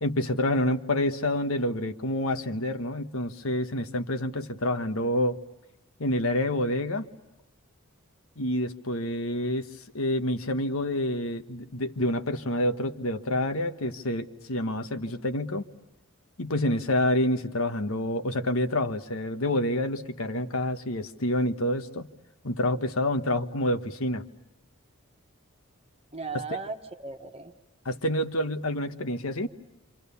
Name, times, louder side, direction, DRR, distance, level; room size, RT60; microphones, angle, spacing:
voice 1, 0.0-5.4 6.0-7.0 8.4-15.6 16.4-22.1 22.4-24.2 26.3-26.4 27.8-29.5, left 1 dB, 70° left, 8 dB, 1.3 m, -28 dB
voice 2, 26.1-27.5, right 4 dB, 25° right, 5 dB, 1.5 m, -36 dB
28.5 x 26.5 x 7.0 m, 1.0 s
head